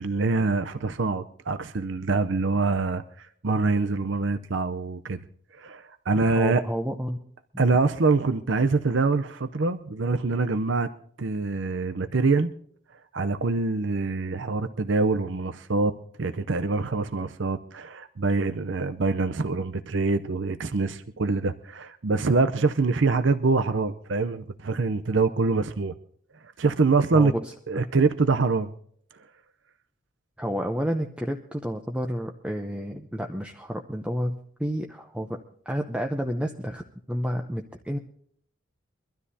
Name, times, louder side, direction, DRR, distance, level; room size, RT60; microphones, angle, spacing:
voice 1, 0.0-5.2 5.5-6.6 7.6-10.9 11.2-12.5 13.1-25.9 26.6-27.3 27.7-28.7, right 3 dB, 60° right, 10 dB, 0.6 m, -25 dB
voice 2, 6.2-7.2 27.1-27.5 30.4-35.4 35.7-38.0, equal, 5° right, 3 dB, 0.6 m, -30 dB
24.0 x 13.0 x 2.7 m, 0.62 s
head